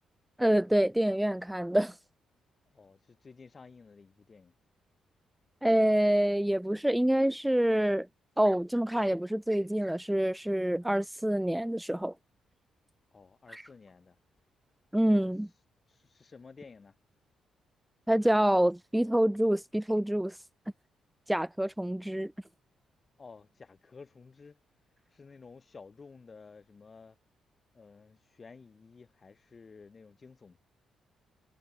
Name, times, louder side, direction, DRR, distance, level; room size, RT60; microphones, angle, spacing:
voice 1, 0.4-2.0 5.6-8.1 8.4-12.1 13.5-13.6 14.9-15.5 18.1-20.4 21.3-22.3, right 1 dB, 5° right, 0.4 m, -26 dB
voice 2, 2.7-4.5 13.1-14.2 15.0-15.3 15.9-16.9 23.2-24.6 25.1-27.2 27.7-30.6, left 4 dB, 40° left, 7.8 m, -53 dB
hypercardioid pair, 45°, 0 cm